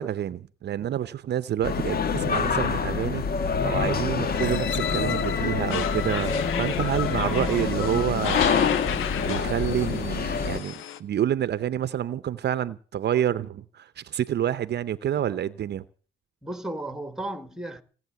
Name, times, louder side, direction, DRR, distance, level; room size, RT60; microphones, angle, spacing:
voice 1, 0.0-3.2 3.6-8.8 9.2-10.7 11.0-15.8, right 10 dB, 60° right, 0.7 m, -28 dB
sound 1, 1.6-10.6, left 5 dB, 50° left, 1.5 m, -26 dB
sound 2, 4.3-9.3 9.8-9.9, left 11 dB, 70° left, 0.9 m, -36 dB
sound 3, 5.7-11.0, left 9 dB, 90° left, 1.3 m, -33 dB
voice 2, 7.1-8.1 16.4-17.8, right 1 dB, ahead, 1.9 m, -36 dB
18.0 x 7.9 x 9.3 m
cardioid pair, 90°, 20 cm